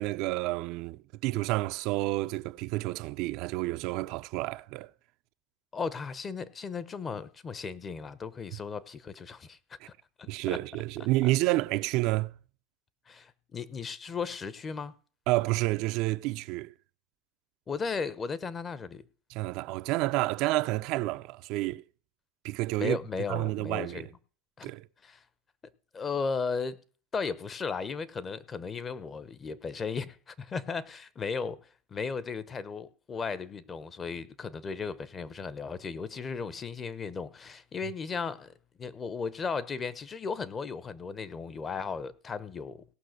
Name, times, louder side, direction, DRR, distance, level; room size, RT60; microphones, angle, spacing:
voice 1, 0.0-4.9 9.8-9.9 10.3-12.4 15.3-16.7 19.3-21.8 22.4-23.0 23.3-24.1 24.6-24.9, right 19 dB, 60° right, 0.5 m, -29 dB
voice 2, 5.7-9.6 10.2-10.6 11.2-11.3 13.1-14.9 17.7-19.0 22.8-24.1 24.6-24.7 25.0-25.2 25.9-26.8 27.1-31.6 31.9-38.5 38.8-42.8, left 5 dB, 25° left, 0.9 m, -35 dB
17.5 x 5.8 x 6.6 m
supercardioid pair, 110°, 0 cm